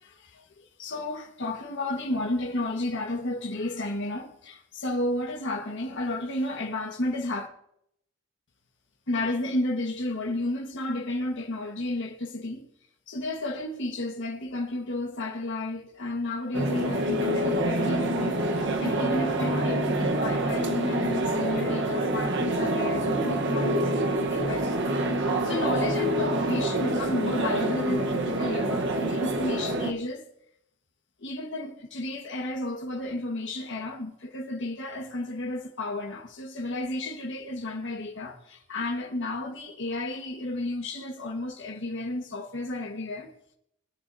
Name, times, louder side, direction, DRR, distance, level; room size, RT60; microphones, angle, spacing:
voice 1, 0.0-7.5 9.1-12.7 13.1-24.9 25.2-30.2 31.2-43.3, left 2 dB, 60° left, 1.4 m, -32 dB
sound 1, 16.5-29.9, right 1 dB, 55° right, 1.1 m, -26 dB
22.0 x 9.5 x 2.7 m
head